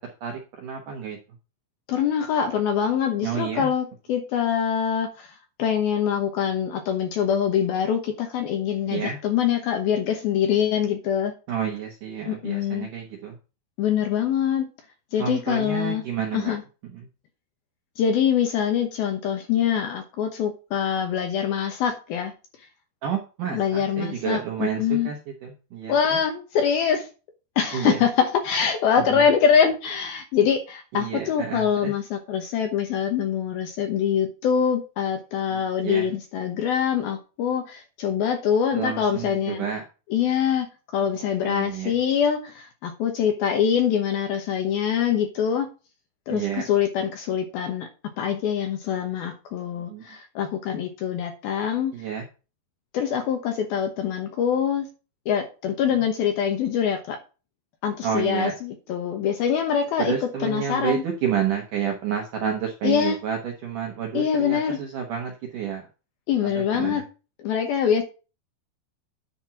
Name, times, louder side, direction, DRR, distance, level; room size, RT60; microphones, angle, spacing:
voice 1, 0.2-1.2 3.2-3.7 8.9-9.2 11.5-13.4 15.2-16.5 16.9-17.1 23.0-25.2 25.4-25.9 27.7-28.0 29.0-29.2 30.9-31.9 35.5-36.1 38.7-39.8 41.4-41.9 46.3-46.7 49.9-50.0 51.9-52.2 58.0-58.5 60.0-65.8 66.4-67.0, right 8 dB, 70° right, 1 dB, 1.9 m, -30 dB
voice 2, 1.9-5.3 5.6-11.3 12.3-12.9 13.8-14.7 15.1-16.0 16.3-16.6 18.0-22.3 23.5-25.1 25.9-27.1 27.6-39.6 40.1-45.7 46.3-47.9 48.2-51.9 52.9-54.9 55.3-57.2 57.8-60.1 60.4-61.0 62.8-63.2 64.1-64.8 66.3-67.0 67.4-68.0, left 8 dB, 70° left, 5 dB, 2.4 m, -24 dB
10.0 x 4.4 x 5.8 m, 0.33 s
omnidirectional pair, 5.4 m